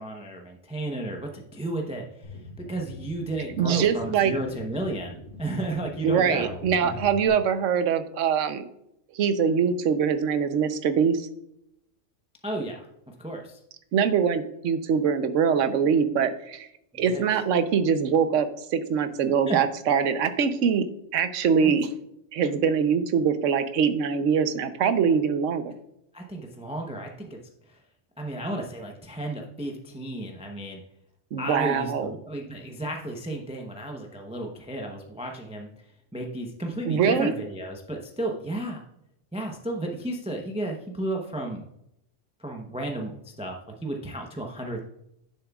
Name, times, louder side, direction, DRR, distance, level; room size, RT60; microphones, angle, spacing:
voice 1, 0.0-7.0 12.4-13.6 16.9-17.3 19.5-19.6 21.6-21.8 26.1-27.4 27.7-27.8 28.2-30.8 31.4-35.8 36.1-38.8 39.3-41.6 42.4-43.6 43.8-44.9, right 1 dB, 5° right, 2 dB, 0.7 m, -33 dB
sound 1, 2.2-7.3, left 2 dB, 90° left, 2.0 m, -42 dB
voice 2, 3.6-4.3 6.0-8.7 9.1-11.3 13.9-16.7 17.0-20.8 21.1-21.9 22.3-25.7 31.3-32.1 36.9-37.3, right 7 dB, 80° right, 10 dB, 1.1 m, -23 dB
11.0 x 7.0 x 2.3 m, 0.78 s
omnidirectional pair, 1.3 m